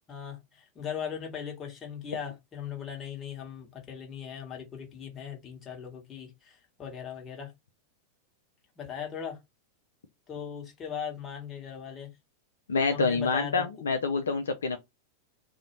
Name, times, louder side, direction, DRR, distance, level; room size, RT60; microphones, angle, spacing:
voice 1, 0.1-7.5 8.8-9.4 10.3-12.1 12.9-13.6, left 8 dB, 25° left, 1.1 m, -39 dB
voice 2, 12.7-14.8, left 4 dB, 70° left, 0.3 m, -27 dB
2.5 x 2.0 x 2.9 m
figure-of-eight pair, 90°, 0 cm